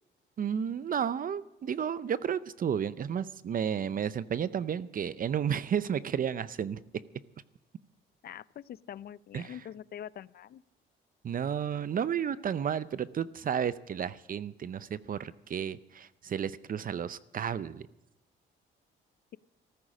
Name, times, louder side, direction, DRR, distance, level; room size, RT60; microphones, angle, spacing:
voice 1, 0.4-6.8 9.3-9.6 11.2-17.8, right 8 dB, 45° right, 16 dB, 0.6 m, -32 dB
voice 2, 8.2-10.6, left 10 dB, 50° left, 20 dB, 0.5 m, -44 dB
14.0 x 13.5 x 6.3 m, 0.91 s
cardioid pair, 90°, 20 cm